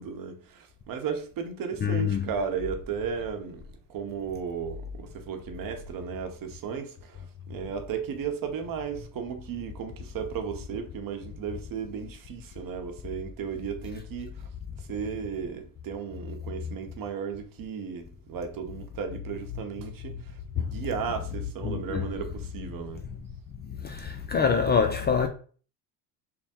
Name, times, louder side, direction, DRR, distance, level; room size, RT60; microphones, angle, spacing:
voice 1, 0.0-3.6 3.9-14.5 14.8-23.0, right 6 dB, 50° right, 0.9 m, -35 dB
voice 2, 1.8-2.3 21.6-22.0 23.7-25.3, left 6 dB, 25° left, 0.3 m, -25 dB
3.4 x 2.1 x 4.2 m
supercardioid pair, 95°, 43 cm